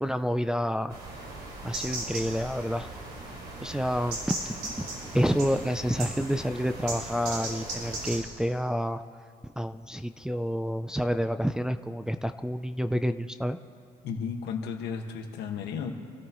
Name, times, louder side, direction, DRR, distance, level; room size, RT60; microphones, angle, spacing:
voice 1, 0.0-1.0 1.6-2.9 3.6-9.0 9.4-13.6, equal, 5° right, 8 dB, 0.4 m, -29 dB
sound 1, 0.9-8.2, right 2 dB, 70° right, 5.0 m, -37 dB
voice 2, 14.0-15.9, left 6 dB, 80° left, 3 dB, 1.6 m, -34 dB
27.0 x 13.5 x 3.1 m, 2.2 s
cardioid pair, 110°, 17 cm